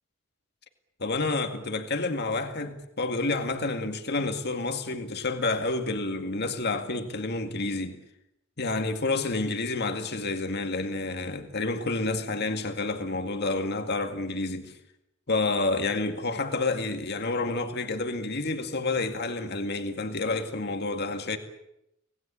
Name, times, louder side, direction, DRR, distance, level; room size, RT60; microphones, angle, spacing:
voice 1, 1.0-8.0 8.6-14.8 15.3-21.4, left 3 dB, 55° left, 2.1 m, -29 dB
25.5 x 19.0 x 8.8 m
head